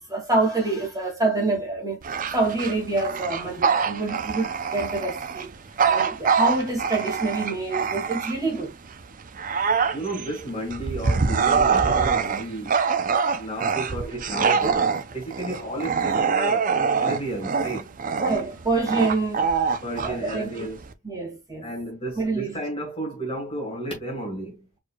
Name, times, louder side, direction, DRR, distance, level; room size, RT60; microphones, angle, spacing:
voice 1, 0.1-5.5 5.8-8.7 18.2-19.5 20.0-20.7 21.0-21.7 22.2-22.6, right 3 dB, 15° right, 2.3 m, -26 dB
Bark / Growling, 2.0-8.6 9.0-20.9, right 5 dB, 35° right, 0.5 m, -24 dB
voice 2, 9.9-12.7 13.3-14.8 15.1-17.9 19.8-20.8 21.6-24.7, right 1 dB, 25° left, 1.8 m, -32 dB
4.6 x 4.3 x 2.3 m
head